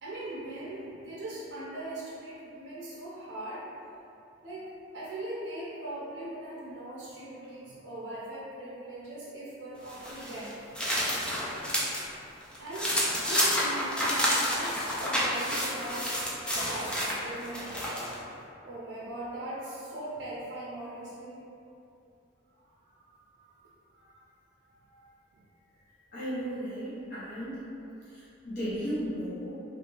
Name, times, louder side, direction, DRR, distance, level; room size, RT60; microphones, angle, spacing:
voice 1, 0.0-3.6 4.4-4.7 4.9-10.6 12.6-16.1 16.5-21.5 22.6-23.6 23.9-24.3 24.7-25.4 25.7-25.9, right 1 dB, 60° right, -7 dB, 0.5 m, -40 dB
sound 1, 9.9-12.0 12.4-18.2, equal, 5° left, 0.3 m, -29 dB
voice 2, 26.1-27.6 28.0-29.5, equal, 50° left, -12 dB, 0.6 m, -35 dB
2.7 x 2.3 x 2.8 m, 2.7 s
head